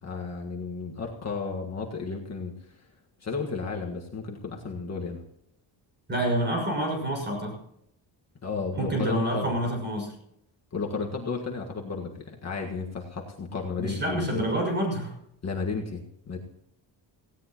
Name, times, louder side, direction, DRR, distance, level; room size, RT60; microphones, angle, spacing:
voice 1, 0.0-2.9 3.2-5.2 8.4-9.5 10.7-14.4 15.4-16.4, left 4 dB, 35° left, 0 dB, 1.7 m, -33 dB
voice 2, 6.1-7.6 8.7-10.1 13.8-15.2, right 1 dB, 20° right, 1 dB, 6.3 m, -28 dB
18.0 x 17.0 x 3.0 m, 0.77 s
wide cardioid pair, 175°, 46 cm